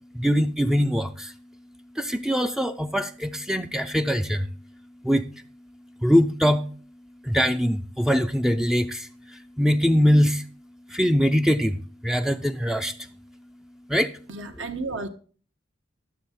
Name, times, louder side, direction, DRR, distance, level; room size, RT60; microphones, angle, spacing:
voice 1, 0.1-1.3 2.0-4.5 5.0-5.2 6.0-6.7 7.2-9.1 9.6-10.4 10.9-11.8 12.0-12.9 13.9-14.1, equal, 5° right, 0.4 m, -22 dB
voice 2, 14.3-15.1, right 3 dB, 75° right, 1.2 m, -32 dB
12.0 x 7.2 x 4.1 m
head